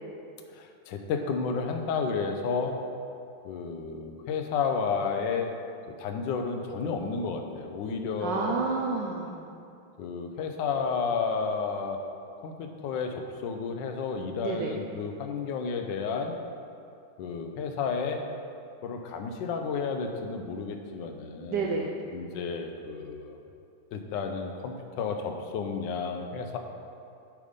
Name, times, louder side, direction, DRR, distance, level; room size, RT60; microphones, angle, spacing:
voice 1, 0.5-2.8 3.4-5.5 6.0-8.6 10.0-12.1 12.4-16.4 17.2-18.3 18.8-21.7 22.1-23.4 23.9-26.6, left 5 dB, 70° left, 4 dB, 1.3 m, -31 dB
voice 2, 8.2-9.4 14.4-14.8 21.5-21.9, right 4 dB, 70° right, -1 dB, 1.2 m, -29 dB
8.4 x 5.3 x 5.1 m, 2.5 s
omnidirectional pair, 2.2 m